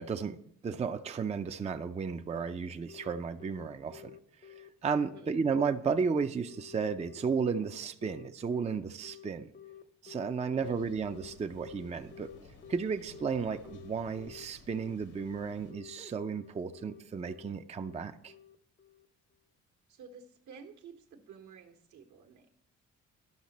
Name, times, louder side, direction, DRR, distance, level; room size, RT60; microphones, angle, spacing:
voice 1, 0.0-4.1 4.4-9.5 10.0-12.3 12.7-18.3, right 5 dB, 20° right, 8 dB, 0.5 m, -33 dB
Telephone, 2.9-19.1, left 11 dB, 35° left, 0.7 m, -51 dB
voice 2, 5.0-5.4 10.5-10.9 19.9-22.5, right 6 dB, 75° right, 4 dB, 1.3 m, -52 dB
Thunder, 10.6-15.7, left 3 dB, 85° left, 1.9 m, -56 dB
12.0 x 5.7 x 4.1 m, 0.70 s
cardioid pair, 90°, 30 cm